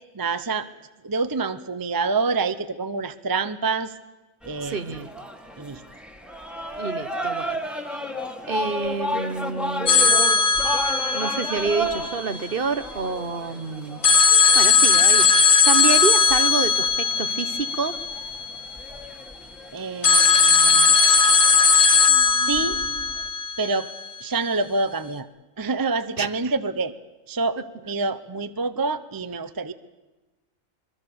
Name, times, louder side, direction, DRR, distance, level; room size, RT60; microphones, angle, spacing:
voice 1, 0.1-0.7 1.0-3.9 4.4-4.8 5.6-5.8 19.7-20.9 22.3-22.8 23.6-23.9 24.2-25.3 25.6-26.9 27.3-29.7, right 3 dB, 20° right, 12 dB, 0.6 m, -27 dB
sound 1, 4.4-23.3, equal, ahead, 1.7 m, -34 dB
voice 2, 4.6-5.1 6.8-7.6 8.5-10.2 11.1-14.0 14.5-16.9 17.2-18.0 20.8-21.1 22.1-23.0 26.2-26.3, right 5 dB, 45° right, 12 dB, 1.1 m, -28 dB
sound 2, 9.9-12.8 14.0-19.0 20.0-24.2, left 5 dB, 60° left, 1.6 m, -18 dB
24.0 x 23.0 x 7.0 m, 1.1 s
omnidirectional pair, 1.4 m